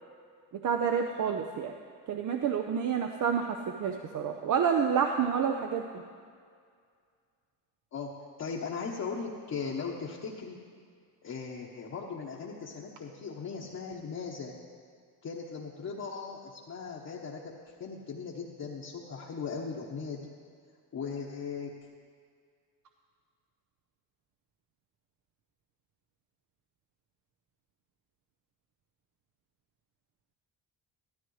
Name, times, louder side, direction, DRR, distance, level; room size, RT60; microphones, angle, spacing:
voice 1, 0.6-1.7 2.1-5.8, right 7 dB, 45° right, 4 dB, 0.7 m, -28 dB
voice 2, 8.4-10.6 11.2-14.6 15.2-20.3 20.9-21.7, left 5 dB, 40° left, -3 dB, 1.1 m, -38 dB
13.0 x 13.0 x 3.2 m, 2.1 s
cardioid pair, 100°, 40 cm